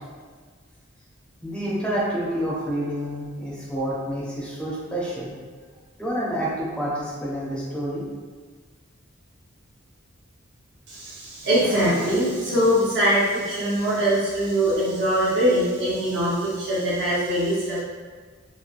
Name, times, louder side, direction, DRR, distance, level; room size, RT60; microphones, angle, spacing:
voice 1, 1.4-5.3 6.0-8.0, right 1 dB, 5° left, -7 dB, 0.6 m, -28 dB
voice 2, 10.9-17.8, equal, 55° right, -9 dB, 0.9 m, -22 dB
3.1 x 2.1 x 2.5 m, 1.5 s
head